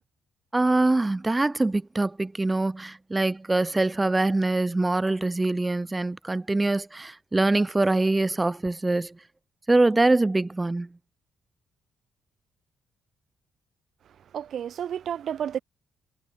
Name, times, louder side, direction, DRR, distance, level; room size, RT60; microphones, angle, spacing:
voice 1, 0.5-9.2 9.7-10.9, right 2 dB, 15° right, 0.5 m, -24 dB
voice 2, 14.3-15.6, right 9 dB, 55° right, 1.2 m, -31 dB
cardioid pair, 145°, 0 cm